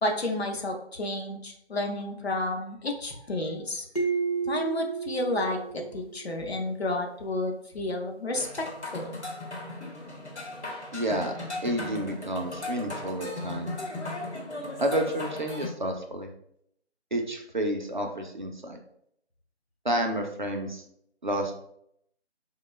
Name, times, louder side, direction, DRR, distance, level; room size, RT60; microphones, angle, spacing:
voice 1, 0.0-3.9 4.5-8.7 8.9-9.2, left 1 dB, 65° left, 3 dB, 0.7 m, -31 dB
sound 1, 4.0-6.5, right 5 dB, 35° left, 0.4 m, -31 dB
sound 2, 8.3-15.7, left 2 dB, 90° left, 1.0 m, -37 dB
voice 2, 10.9-11.3 11.6-13.7 14.8-16.3 17.1-18.8 19.8-20.8 21.2-21.5, right 1 dB, 45° right, 3 dB, 0.4 m, -30 dB
3.2 x 2.2 x 3.1 m, 0.72 s
figure-of-eight pair, 160°, 33 cm